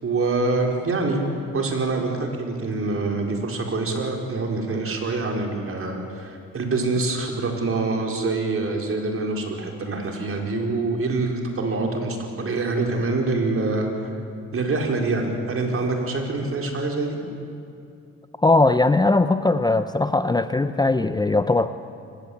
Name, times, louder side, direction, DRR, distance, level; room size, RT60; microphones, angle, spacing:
voice 1, 0.0-1.3 1.5-13.9 14.5-17.2, right 3 dB, 45° right, 2 dB, 4.6 m, -25 dB
voice 2, 18.4-21.7, left 2 dB, 15° left, 11 dB, 0.7 m, -19 dB
24.5 x 20.0 x 8.6 m, 2.5 s
cardioid pair, 90°, 30 cm